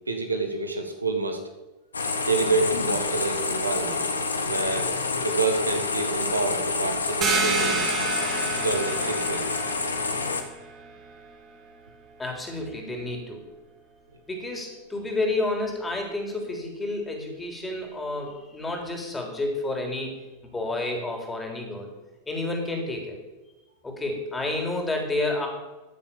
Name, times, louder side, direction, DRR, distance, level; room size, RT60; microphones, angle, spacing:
voice 1, 0.1-1.4 2.2-4.0 4.4-4.9 5.2-7.9 8.6-9.5, right 3 dB, 80° right, 5 dB, 1.5 m, -27 dB
sound 1, 1.9-10.4, left 4 dB, 75° left, 1.4 m, -28 dB
sound 2, 7.2-12.6, right 5 dB, 30° right, 2.2 m, -31 dB
voice 2, 12.2-13.5 14.3-20.1 20.4-21.9 22.3-23.2 23.8-25.5, left 2 dB, 10° left, 2 dB, 3.5 m, -30 dB
14.0 x 6.9 x 7.1 m, 1.1 s
figure-of-eight pair, 90°, 0 cm